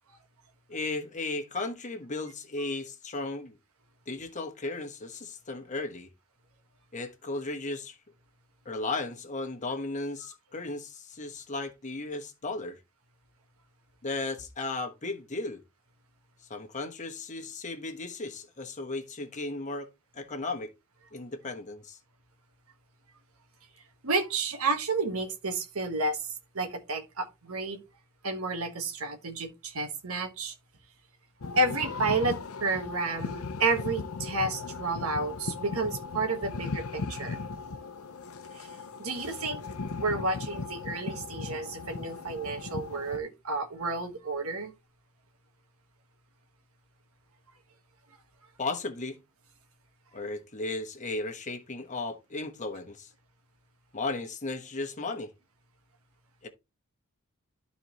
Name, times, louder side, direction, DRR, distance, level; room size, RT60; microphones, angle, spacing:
voice 1, 0.7-3.6 4.1-6.1 6.9-8.0 8.6-12.8 14.0-15.6 16.5-19.9 20.1-20.7 21.1-22.0 48.6-49.2 50.1-53.1 53.9-55.3 56.4-56.5, left 3 dB, 35° left, 1.2 m, -35 dB
voice 2, 24.0-27.8 28.2-30.5 31.5-37.4 38.5-38.7 39.0-39.6 40.0-44.7, right 3 dB, 85° right, 1.5 m, -31 dB
sound 1, 31.4-43.2, left 4 dB, 85° left, 0.7 m, -37 dB
12.0 x 4.1 x 3.1 m
head